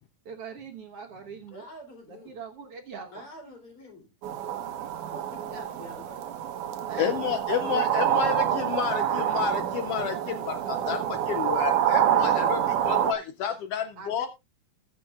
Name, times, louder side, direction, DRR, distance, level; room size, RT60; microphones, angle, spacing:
voice 1, 0.3-1.7 2.1-3.3 4.7-4.9 5.5-5.7 6.9-7.1 7.6-8.2 14.0-14.3, right 6 dB, 55° right, 2 dB, 2.0 m, -41 dB
voice 2, 1.5-2.4 3.1-4.1 5.1-6.2, left 1 dB, 45° left, 2 dB, 4.1 m, -46 dB
sound 1, 4.2-13.1, right 10 dB, 85° right, 2.6 m, -27 dB
voice 3, 7.0-14.3, left 8 dB, 80° left, 8 dB, 1.3 m, -30 dB
20.5 x 6.8 x 2.4 m, 0.25 s
omnidirectional pair, 3.5 m